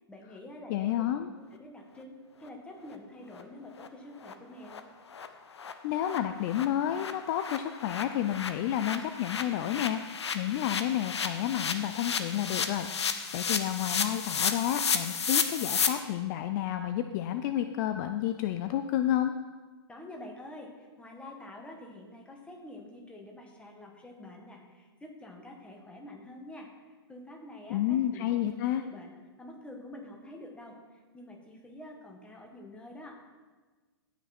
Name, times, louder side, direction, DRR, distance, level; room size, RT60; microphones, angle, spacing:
voice 1, 0.0-0.9 1.4-4.8 19.9-28.3 28.8-29.1 29.4-33.2, left 1 dB, 10° left, 1 dB, 1.8 m, -47 dB
voice 2, 0.7-1.3 5.8-19.3 27.7-28.8, left 11 dB, 45° left, 8 dB, 0.5 m, -30 dB
sound 1, 2.9-3.0 3.3-3.4 3.8-3.9 4.2-4.3 4.7-4.8 5.1-5.3 5.6-5.7 6.0-15.9, left 6 dB, 85° left, 0.9 m, -33 dB
16.5 x 6.0 x 4.3 m, 1.4 s
hypercardioid pair, 125°, 14 cm